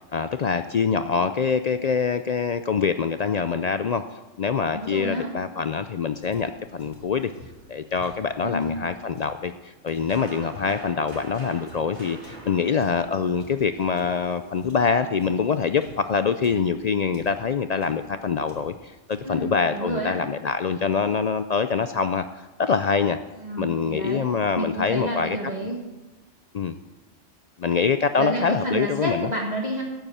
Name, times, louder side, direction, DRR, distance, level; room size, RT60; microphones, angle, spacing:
voice 1, 0.1-4.0 4.4-7.3 7.7-22.2 22.6-23.2 23.6-25.4 26.5-26.8 27.6-29.3, left 5 dB, 65° left, 10 dB, 0.4 m, -25 dB
voice 2, 4.7-5.3 8.4-8.8 19.2-20.1 23.4-24.3 24.5-25.8 28.2-29.8, right 1 dB, 35° right, -2 dB, 1.7 m, -29 dB
sound 1, 6.2-9.4 9.9-14.3 14.6-16.8 17.1-17.5 17.8-18.1 18.5-18.9 19.1-19.5, right 1 dB, 90° left, 2.9 m, -49 dB
sound 2, 7.2-17.3, right 3 dB, 70° right, 2.5 m, -47 dB
8.9 x 8.0 x 8.6 m, 1.1 s
omnidirectional pair, 1.2 m